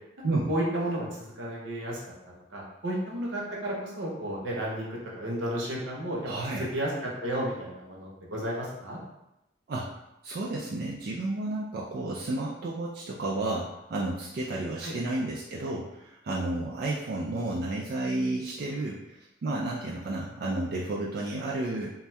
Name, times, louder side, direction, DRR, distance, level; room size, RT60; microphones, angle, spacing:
voice 1, 0.5-2.0 2.5-6.3 6.6-6.9 7.2-9.0 14.8-15.0, right 1 dB, 85° right, -3 dB, 0.8 m, -32 dB
voice 2, 6.2-6.7 9.7-9.9 10.2-21.9, right 2 dB, 55° right, -4 dB, 0.3 m, -32 dB
2.6 x 2.3 x 3.2 m, 0.88 s
head